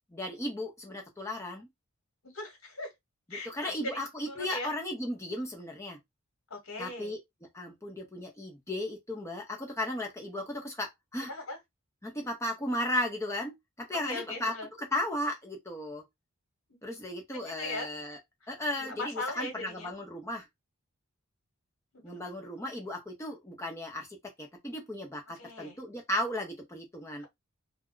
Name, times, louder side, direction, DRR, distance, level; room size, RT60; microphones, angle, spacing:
voice 1, 0.1-1.7 3.4-6.0 6.8-7.2 7.5-11.3 12.0-14.5 14.9-16.0 16.8-18.2 18.5-20.5 22.0-27.2, left 1 dB, 15° left, 0.8 m, -35 dB
voice 2, 2.2-2.9 3.3-4.0 4.3-4.7 6.5-7.1 11.3-11.6 14.0-14.7 16.7-16.8 17.3-17.9 18.8-19.9 22.0-22.3 25.4-25.8 27.2-27.3, left 2 dB, 65° left, 1.2 m, -39 dB
2.2 x 2.2 x 3.7 m
head